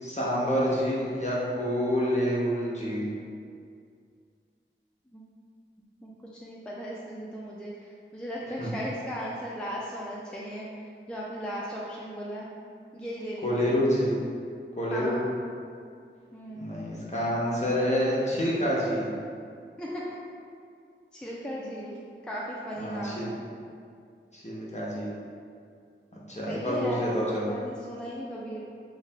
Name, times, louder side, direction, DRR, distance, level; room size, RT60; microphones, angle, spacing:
voice 1, 0.0-3.1 8.6-8.7 13.4-14.2 14.8-15.1 16.6-19.2 22.8-23.4 24.3-25.1 26.3-27.5, equal, 35° left, -6 dB, 0.9 m, -27 dB
voice 2, 6.0-12.5 12.9-13.8 14.9-15.3 16.3-16.7 19.8-20.0 21.1-22.0 22.2-23.3 26.5-28.6, equal, 5° left, -5 dB, 0.4 m, -37 dB
3.2 x 2.8 x 3.4 m, 2.3 s
wide cardioid pair, 45°, 21 cm